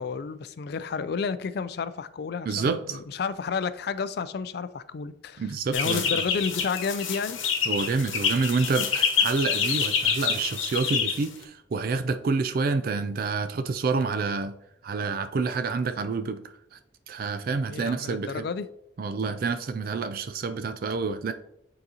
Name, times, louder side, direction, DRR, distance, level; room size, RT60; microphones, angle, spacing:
voice 1, 0.0-5.5 5.7-7.4 17.7-18.7, left 5 dB, 55° left, 0.3 m, -31 dB
voice 2, 2.5-3.0 5.4-6.2 7.7-14.5 14.8-16.4 16.7-16.8 17.1-18.5 19.0-21.3, right 4 dB, 50° right, 0.3 m, -28 dB
sound 1, 5.7-11.4, left 6 dB, 90° left, 1.0 m, -27 dB
9.2 x 3.9 x 2.8 m
head